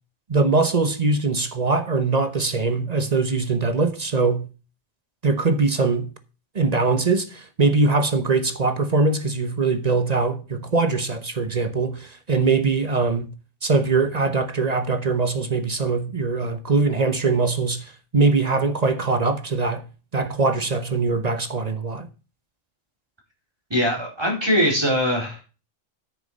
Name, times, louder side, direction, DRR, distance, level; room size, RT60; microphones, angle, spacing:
voice 1, 0.3-4.5 5.2-6.1 6.5-13.3 13.6-19.8 20.1-22.1, right 3 dB, 35° right, 0.9 m, -22 dB
voice 2, 23.7-25.4, equal, 20° right, 4.1 m, -21 dB
9.0 x 6.9 x 5.3 m
omnidirectional pair, 1.3 m